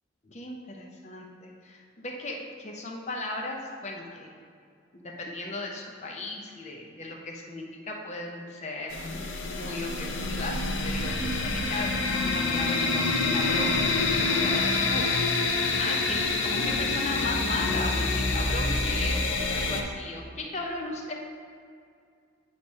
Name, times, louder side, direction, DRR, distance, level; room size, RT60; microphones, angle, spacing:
voice 1, 0.2-4.4 4.9-9.0 9.5-13.1 13.3-21.1, left 2 dB, 35° left, 1 dB, 0.7 m, -36 dB
sound 1, 8.9-19.8, left 3 dB, 85° left, 0.7 m, -27 dB
8.8 x 3.4 x 5.3 m, 2.3 s
head